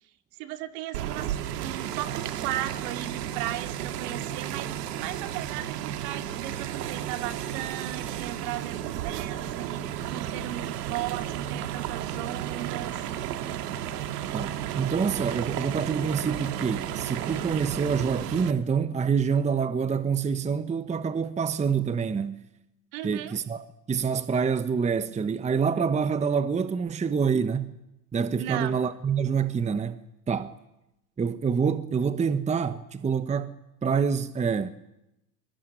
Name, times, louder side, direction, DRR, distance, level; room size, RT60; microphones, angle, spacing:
voice 1, 0.4-13.0 22.9-23.4 28.4-28.8, right 14 dB, 60° right, 2.4 m, -36 dB
sound 1, 0.9-18.5, right 11 dB, 80° right, 1.9 m, -33 dB
voice 2, 14.3-22.5 23.0-27.7 28.1-30.0 30.3-30.5 31.2-33.5 33.8-34.7, right 6 dB, 15° right, 0.9 m, -26 dB
23.0 x 22.0 x 9.3 m
hypercardioid pair, 100°, 47 cm